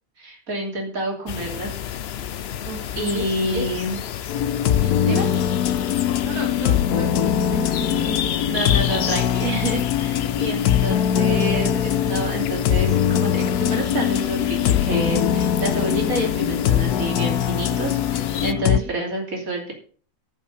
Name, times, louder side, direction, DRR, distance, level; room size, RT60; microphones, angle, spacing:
voice 1, 0.2-1.7 3.0-4.0 5.0-5.3 8.5-19.7, right 1 dB, 65° right, 1 dB, 3.5 m, -28 dB
sound 1, 1.3-18.5, left 10 dB, 60° left, 0.7 m, -31 dB
voice 2, 2.6-3.7 4.8-5.3 6.2-8.4 18.7-18.9, right 3 dB, 85° right, 0 dB, 2.9 m, -34 dB
sound 2, 4.3-18.8, left 10 dB, 90° left, 1.2 m, -22 dB
13.5 x 5.6 x 6.6 m, 0.43 s
omnidirectional pair, 1.6 m